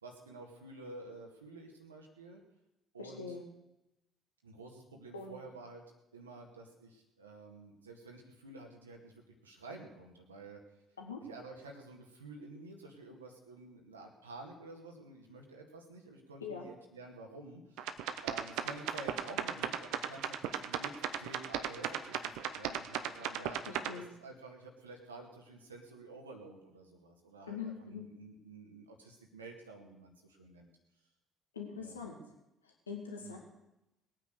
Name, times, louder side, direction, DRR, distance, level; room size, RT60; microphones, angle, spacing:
voice 1, 0.0-2.4 2.9-3.4 4.4-5.8 6.1-10.6 11.2-23.6 23.9-30.7 31.8-32.0 33.2-33.4, right 2 dB, 80° right, 1 dB, 1.9 m, -50 dB
voice 2, 3.0-3.4 5.1-5.4 11.0-11.2 16.4-16.7 23.7-24.1 27.5-28.0 31.5-32.2 32.6-33.4, left 6 dB, 80° left, 1 dB, 2.3 m, -43 dB
sound 1, 17.8-23.9, right 10 dB, 60° right, 1.0 m, -36 dB
20.0 x 9.2 x 6.6 m, 0.90 s
figure-of-eight pair, 50°, 0 cm